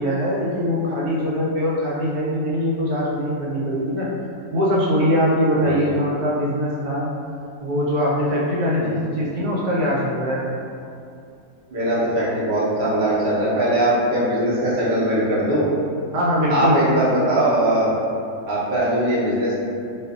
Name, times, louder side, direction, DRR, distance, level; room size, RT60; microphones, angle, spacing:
voice 1, 0.0-4.1 4.5-7.1 7.6-10.4 16.1-16.8, equal, 80° right, -5 dB, 1.1 m, -22 dB
voice 2, 11.7-15.7 16.5-17.9 18.5-19.5, right 1 dB, 50° right, -9 dB, 0.7 m, -21 dB
2.5 x 2.3 x 2.3 m, 2.5 s
omnidirectional pair, 1.6 m